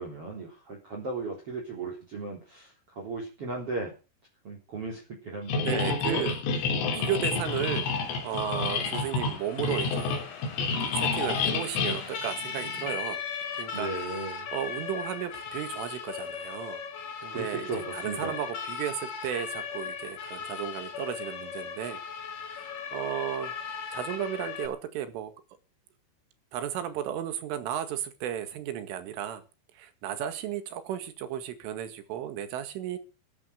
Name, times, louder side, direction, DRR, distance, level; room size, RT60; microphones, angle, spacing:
voice 1, 0.0-3.9 4.4-6.6 6.9-7.2 13.7-14.5 17.3-18.4, right 3 dB, 30° right, 1 dB, 4.0 m, -36 dB
sound 1, 5.5-12.9, left 4 dB, 75° left, 5.8 m, -29 dB
voice 2, 5.6-6.4 6.9-10.2 11.0-13.2 13.6-16.8 17.2-22.0 22.5-25.3 26.5-29.4 29.8-33.0, right 10 dB, 75° right, 10 dB, 4.4 m, -34 dB
Siren, 7.0-24.7, left 7 dB, 45° left, 3.6 m, -38 dB
14.0 x 13.5 x 6.6 m, 0.32 s
omnidirectional pair, 5.8 m